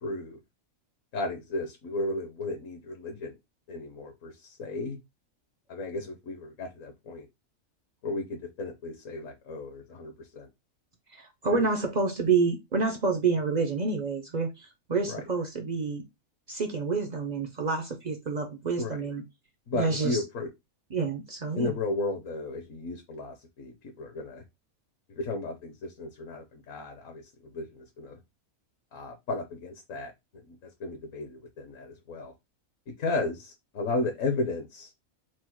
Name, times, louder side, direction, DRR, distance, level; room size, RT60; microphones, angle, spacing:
voice 1, 0.0-0.4 1.1-3.4 3.7-5.0 5.7-7.3 8.0-10.5 11.5-11.7 15.1-15.2 18.8-19.0 19.7-20.5 21.5-24.4 25.1-28.2 28.9-30.1 30.5-32.3 33.0-34.9, left 2 dB, 65° left, 1.1 m, -34 dB
voice 2, 11.1-16.0 16.5-19.2 19.7-20.2 20.9-21.8, right 4 dB, 75° right, 0.4 m, -28 dB
4.6 x 2.0 x 4.4 m
omnidirectional pair, 1.5 m